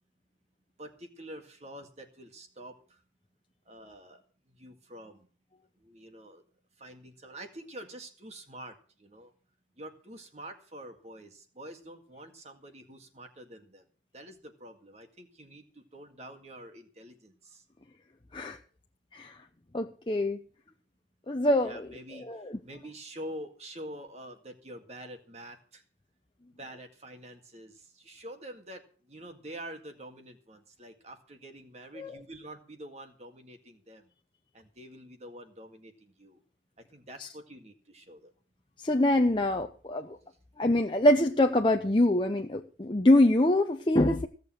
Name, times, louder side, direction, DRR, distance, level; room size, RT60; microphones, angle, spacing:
voice 1, 0.8-3.0 3.7-4.2 4.6-5.3 5.8-6.4 6.8-9.3 9.8-13.8 14.1-17.6 21.6-22.3 22.6-25.8 26.6-28.8 29.1-34.1 34.5-36.4 36.9-38.3, right 1 dB, 35° right, 5 dB, 2.0 m, -46 dB
voice 2, 19.1-19.4 19.7-20.4 21.3-22.6 32.0-32.2 37.2-37.3 38.8-40.2 40.6-44.3, left 1 dB, 25° left, 4 dB, 0.7 m, -25 dB
16.5 x 6.8 x 7.8 m, 0.41 s
head